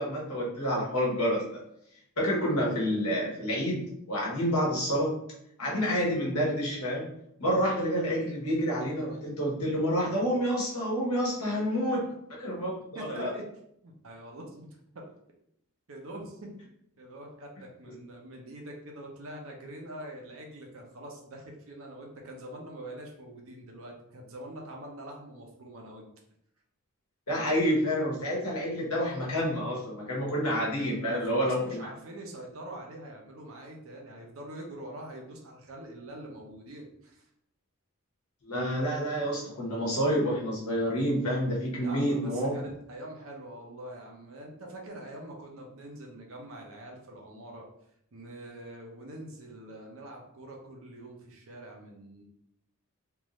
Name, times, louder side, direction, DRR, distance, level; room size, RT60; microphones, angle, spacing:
voice 1, 0.0-1.6 2.2-5.2 5.6-7.1 7.4-12.1 12.4-13.3 17.9-18.0 27.3-31.9 38.4-42.6, equal, 85° left, -4 dB, 1.3 m, -28 dB
voice 2, 12.9-13.4 13.8-15.1 15.9-16.7 17.0-26.1 31.1-37.3 41.8-47.7 48.1-52.2, right 1 dB, 65° right, 0 dB, 0.8 m, -44 dB
3.4 x 2.6 x 3.1 m, 0.74 s
head